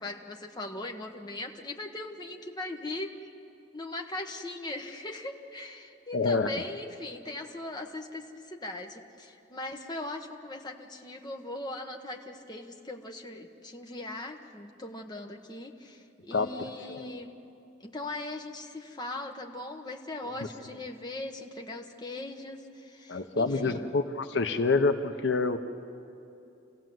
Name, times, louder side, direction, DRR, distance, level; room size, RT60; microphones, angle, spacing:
voice 1, 0.0-3.1 3.7-17.3 17.8-23.9, left 2 dB, 20° left, 2 dB, 1.2 m, -40 dB
voice 2, 6.1-6.5 16.3-16.5 16.9-17.1 20.4-20.5 23.1-25.6, left 3 dB, 70° left, 8 dB, 0.8 m, -27 dB
27.5 x 16.5 x 7.8 m, 2.7 s
head